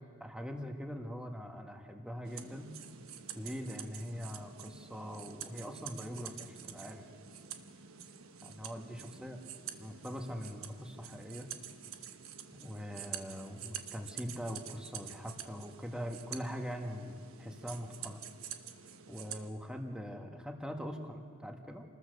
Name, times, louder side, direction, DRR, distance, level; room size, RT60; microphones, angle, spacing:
voice 1, 0.2-2.7 3.3-7.0 8.4-9.4 9.8-11.5 12.6-18.2 19.1-21.8, equal, 5° right, 3 dB, 1.7 m, -42 dB
sound 1, 2.3-19.5, right 9 dB, 85° right, 1.2 m, -48 dB
28.0 x 21.0 x 6.7 m, 2.1 s
head